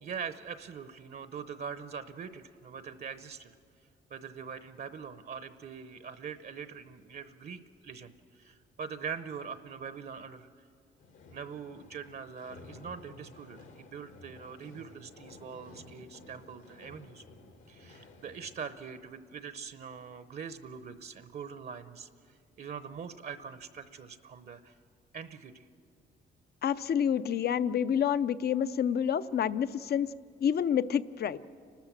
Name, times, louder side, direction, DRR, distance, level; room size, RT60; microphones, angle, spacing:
voice 1, 0.0-3.5 4.1-10.5 11.3-17.2 17.7-24.7 25.1-25.6, right 6 dB, 50° right, 11 dB, 0.8 m, -43 dB
sound 1, 11.0-18.6, left 2 dB, 80° left, 2.5 m, -53 dB
voice 2, 26.6-30.1 30.4-31.4, left 8 dB, 55° left, 15 dB, 0.6 m, -28 dB
29.5 x 13.0 x 7.4 m, 2.3 s
cardioid pair, 90°, 20 cm